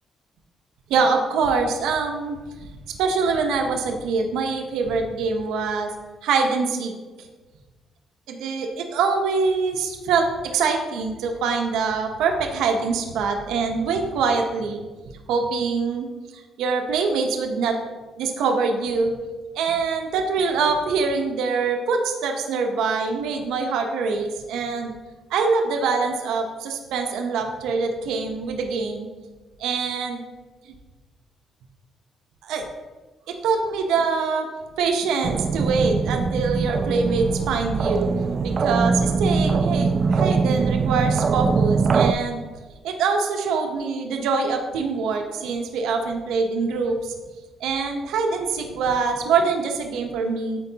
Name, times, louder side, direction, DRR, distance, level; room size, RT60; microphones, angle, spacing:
voice 1, 0.9-2.4 2.9-5.9 6.2-7.3 8.3-14.8 15.3-16.1 16.6-17.8 18.2-19.1 19.5-24.9 25.3-29.1 29.6-30.2 30.7-30.8 32.4-32.6 33.3-34.5 34.8-38.1 38.4-42.4 42.8-47.1 47.6-50.6, right 4 dB, 90° right, 3 dB, 0.9 m, -24 dB
sound 1, 35.2-42.1, right 5 dB, 45° right, 0.4 m, -22 dB
12.5 x 4.5 x 2.8 m, 1.3 s
cardioid pair, 90°, 0 cm